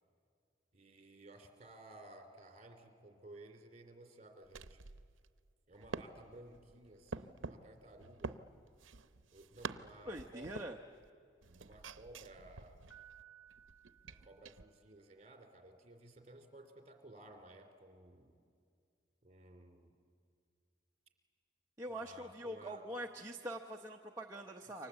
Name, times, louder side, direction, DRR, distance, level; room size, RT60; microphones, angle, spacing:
voice 1, 0.7-4.8 5.7-8.4 9.3-10.6 11.6-12.9 14.1-18.4 19.2-19.9 21.9-22.9 24.6-24.9, right 1 dB, 35° right, 5 dB, 2.9 m, -56 dB
sound 1, 4.4-11.1 11.4-14.7, right 4 dB, 80° right, 0.7 m, -49 dB
voice 2, 10.1-10.8 21.8-24.9, right 1 dB, 15° right, 0 dB, 0.8 m, -44 dB
Piano, 12.9-15.0, right 10 dB, 85° left, 2.6 m, -60 dB
29.0 x 25.0 x 8.2 m, 2.3 s
head